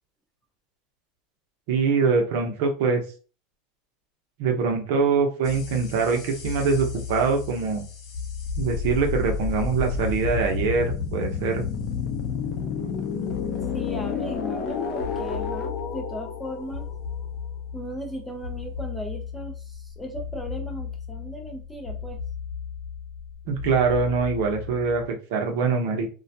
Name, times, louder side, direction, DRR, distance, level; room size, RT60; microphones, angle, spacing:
voice 1, 1.7-3.0 4.4-7.8 8.6-11.7 23.5-26.1, right 5 dB, 70° right, 3 dB, 0.7 m, -23 dB
sound 1, 5.4-25.1, left 6 dB, 50° left, 0.6 m, -32 dB
voice 2, 13.7-16.9 17.7-22.2, equal, 5° left, 5 dB, 0.5 m, -37 dB
2.3 x 2.2 x 2.7 m, 0.36 s
supercardioid pair, 125°, 0 cm